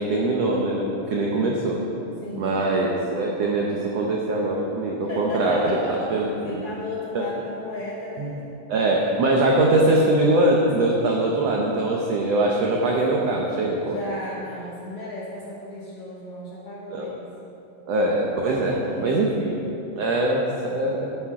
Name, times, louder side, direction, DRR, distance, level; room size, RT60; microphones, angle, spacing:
voice 1, 0.0-1.8 2.4-5.8 6.1-6.3 6.5-6.6 7.1-7.2 8.2-8.3 8.7-14.0 16.9-17.1 17.9-19.6 20.0-21.1, right 2 dB, 80° right, -1 dB, 1.4 m, -22 dB
voice 2, 1.2-1.5 2.2-2.6 5.0-6.1 6.4-8.4 13.9-17.3 18.5-19.3, left 1 dB, 60° left, -5 dB, 1.6 m, -35 dB
12.0 x 8.3 x 4.8 m, 2.9 s
omnidirectional pair, 4.1 m